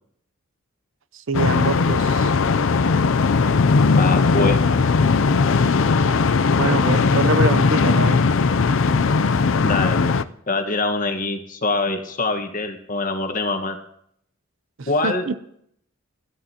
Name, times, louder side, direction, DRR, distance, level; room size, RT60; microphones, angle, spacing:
sound 1, 1.3-10.2, left 4 dB, 60° left, 0.5 m, -18 dB
voice 1, 1.3-2.3 6.6-8.2 14.8-15.4, right 3 dB, 60° right, 14 dB, 0.6 m, -24 dB
voice 2, 4.0-4.6 9.6-10.1 10.5-13.8 14.9-15.3, left 3 dB, 35° left, 6 dB, 1.4 m, -24 dB
25.0 x 13.0 x 2.9 m, 0.72 s
head